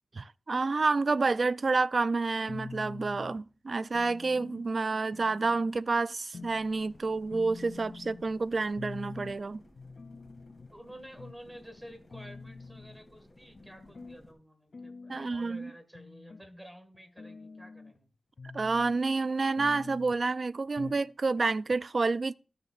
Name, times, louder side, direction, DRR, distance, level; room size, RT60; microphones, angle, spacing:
voice 1, 0.1-9.6 15.1-15.7 18.5-22.3, right 3 dB, 50° right, 0.3 m, -29 dB
sound 1, 2.5-3.4 3.9-4.7 5.1-5.8 6.3-6.6 6.9-7.0 7.3-8.3 8.8-9.4 9.8-10.7 11.2-11.4 11.8-11.9 12.1-13.0 13.6-14.2 14.7-15.4 15.9-16.5 16.9-18.0 18.4-19.0 19.6-20.2 20.8-21.1 21.4-21.5 21.7-21.8, left 4 dB, 55° left, 0.3 m, -45 dB
sound 2, 6.4-14.3, left 1 dB, 30° left, 2.7 m, -57 dB
voice 2, 10.7-18.1, equal, 10° right, 1.7 m, -51 dB
14.0 x 6.5 x 2.4 m
wide cardioid pair, 75°, 0 cm